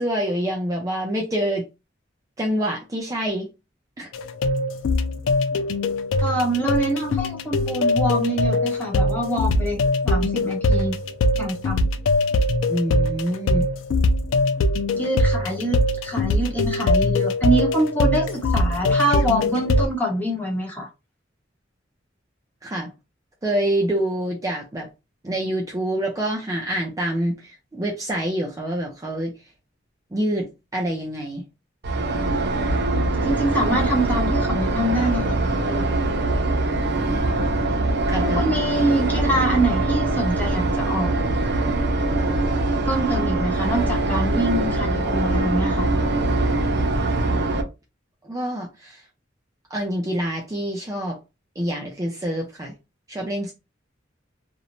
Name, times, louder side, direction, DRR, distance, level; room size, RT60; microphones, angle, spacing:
voice 1, 0.0-1.6 2.4-3.5 4.0-4.1 12.7-13.6 22.6-22.9 23.4-24.9 25.2-29.3 30.1-30.5 30.7-31.4 37.0-37.4 38.1-38.4 48.2-49.0 49.7-51.2 51.6-52.7 53.1-53.5, right 1 dB, 20° right, 0.5 m, -26 dB
sound 1, 4.1-19.9, left 2 dB, 85° left, 0.3 m, -22 dB
voice 2, 6.2-9.8 10.0-10.9 11.3-11.9 14.9-20.9 33.1-35.9 38.4-41.1 42.8-45.9, right 1 dB, 10° left, 0.9 m, -25 dB
sound 2, 31.8-47.6, right 2 dB, 60° right, 0.6 m, -22 dB
2.5 x 2.0 x 2.9 m
head